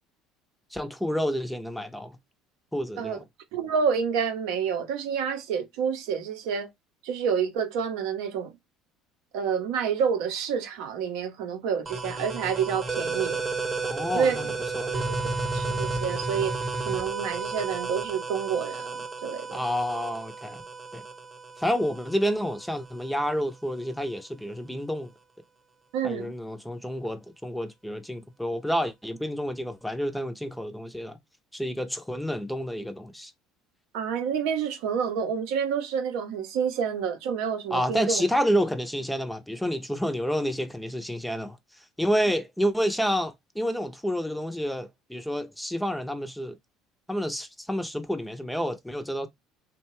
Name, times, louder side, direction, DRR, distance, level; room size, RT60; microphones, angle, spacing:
voice 1, 0.7-2.2 2.7-3.2 13.8-15.0 19.5-20.6 20.9-21.0 21.6-25.1 26.0-31.2 31.5-33.3 37.7-41.6 42.0-46.6 47.1-49.3, equal, 5° left, 0.5 m, -29 dB
voice 2, 3.5-6.7 7.0-8.5 9.3-13.4 14.1-14.4 14.9-15.0 15.5-16.5 16.8-19.6 25.9-26.3 33.9-38.2, right 7 dB, 80° right, 0.6 m, -28 dB
sound 1, 11.9-23.2, right 3 dB, 30° right, 0.8 m, -32 dB
2.7 x 2.2 x 3.0 m
supercardioid pair, 90°, 0 cm